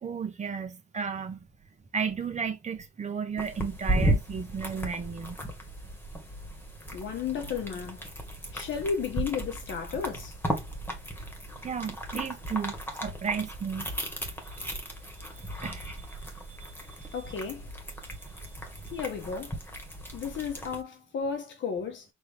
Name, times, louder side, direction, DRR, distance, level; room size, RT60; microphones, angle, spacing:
voice 1, 0.0-1.4 1.9-5.3 11.6-13.9 15.6-15.9 17.1-17.2, right 6 dB, 35° right, 1.3 m, -33 dB
sound 1, 3.4-20.8, right 1 dB, 10° left, 1.8 m, -35 dB
voice 2, 6.9-8.0 8.5-10.3 17.1-17.7 18.9-19.6 20.1-22.0, left 6 dB, 70° left, 1.5 m, -33 dB
4.7 x 3.1 x 3.6 m
cardioid pair, 90°, 20 cm